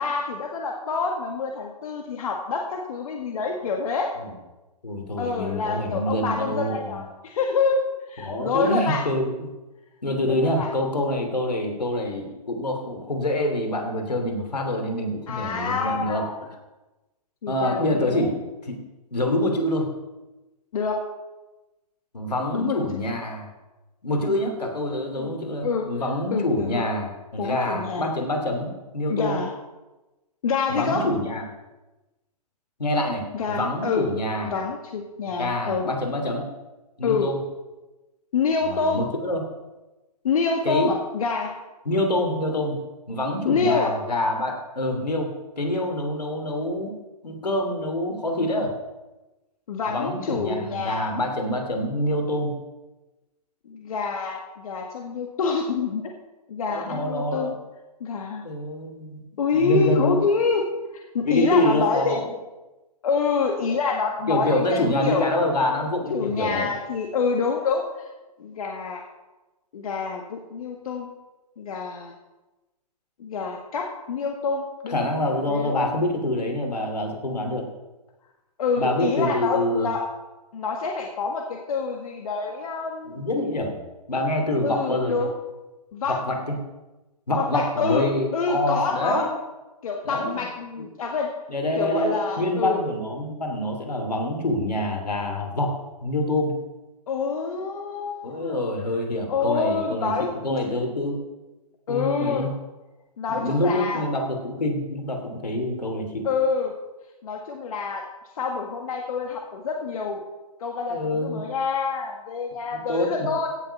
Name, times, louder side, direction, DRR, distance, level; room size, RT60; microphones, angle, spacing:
voice 1, 0.0-4.1 5.2-7.8 8.1-9.0 10.2-10.7 15.3-16.3 17.4-18.3 20.7-21.0 22.5-22.8 25.2-25.3 25.6-25.9 26.3-26.9 27.4-28.1 29.1-29.5 30.4-31.1 33.3-34.1 34.5-35.9 37.0-37.3 38.3-39.0 40.2-41.5 43.4-43.9 49.7-51.1 53.7-56.1 56.5-57.5 58.0-58.4 59.4-60.7 61.1-62.2 63.0-65.4 66.1-67.9 68.4-69.0 69.7-71.1 71.6-72.1 73.2-75.1 75.3-75.9 78.6-80.1 80.5-83.3 84.6-85.3 85.9-86.2 87.3-89.3 89.8-91.3 91.8-92.8 97.1-98.6 99.3-100.3 101.9-102.5 103.2-104.0 106.2-106.7 107.2-108.0 108.4-110.2 110.6-113.5, left 5 dB, 60° left, 2 dB, 1.8 m, -27 dB
voice 2, 4.8-7.0 8.2-9.5 10.0-16.2 17.5-18.4 18.6-18.8 19.1-19.9 22.1-23.5 24.0-29.4 30.7-31.4 32.8-34.5 35.4-36.5 37.0-37.4 38.6-39.4 40.6-41.0 41.8-42.8 43.1-45.3 45.6-46.9 47.2-48.7 49.9-52.5 56.7-57.5 58.4-59.2 59.5-60.2 61.2-62.3 64.3-66.7 74.9-77.7 78.8-79.9 83.1-83.8 84.1-85.3 86.1-86.5 87.3-89.3 90.0-90.3 91.5-96.5 98.2-101.2 101.9-102.5 103.3-106.3 110.9-111.4 112.9-113.3, left 1 dB, 85° left, 3 dB, 3.1 m, -26 dB
16.5 x 7.1 x 5.8 m, 1.1 s
hypercardioid pair, 125°, 20 cm